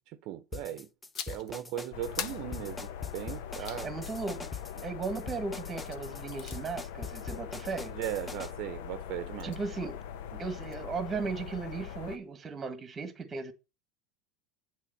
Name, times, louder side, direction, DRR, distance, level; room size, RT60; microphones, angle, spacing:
voice 1, 0.2-0.9 1.3-3.9 7.9-9.6 10.3-10.4, right 12 dB, 55° right, 0.7 m, -38 dB
sound 1, 0.5-8.5, left 4 dB, 10° left, 0.5 m, -43 dB
sound 2, 1.1-1.6 2.2-3.9 6.0-6.6, left 8 dB, 45° left, 0.9 m, -41 dB
sound 3, 1.9-12.2, left 9 dB, 70° left, 0.8 m, -42 dB
voice 2, 3.6-4.5 4.8-7.9 9.4-10.0 10.4-13.5, right 4 dB, 20° right, 1.4 m, -36 dB
8.4 x 3.6 x 6.6 m
supercardioid pair, 135°, 0 cm